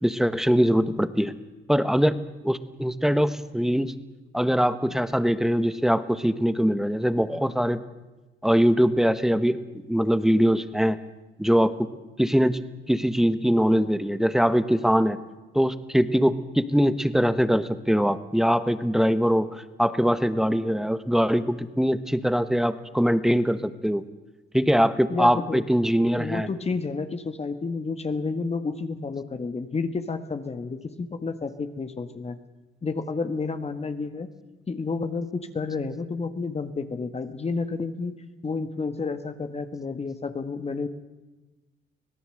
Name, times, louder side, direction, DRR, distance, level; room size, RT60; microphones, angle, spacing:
voice 1, 0.0-1.3 1.7-2.2 2.4-3.9 4.3-7.8 8.4-9.6 9.9-11.0 11.4-11.7 12.2-12.6 12.9-15.2 15.5-24.0 24.5-26.5, equal, ahead, 13 dB, 1.2 m, -22 dB
voice 2, 25.1-25.6 26.2-32.4 32.8-34.3 34.7-38.1 38.4-40.9, left 4 dB, 30° left, 9 dB, 1.6 m, -30 dB
25.0 x 17.5 x 7.8 m, 1.1 s
cardioid pair, 90°, 20 cm